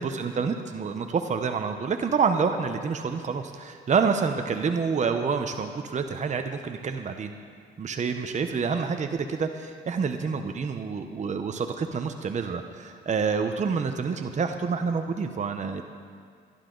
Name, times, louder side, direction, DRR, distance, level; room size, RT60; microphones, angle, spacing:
voice 1, 0.0-7.3 7.8-15.8, right 5 dB, 35° right, 7 dB, 0.8 m, -28 dB
23.5 x 11.0 x 3.9 m, 2.1 s
cardioid pair, 90°, 20 cm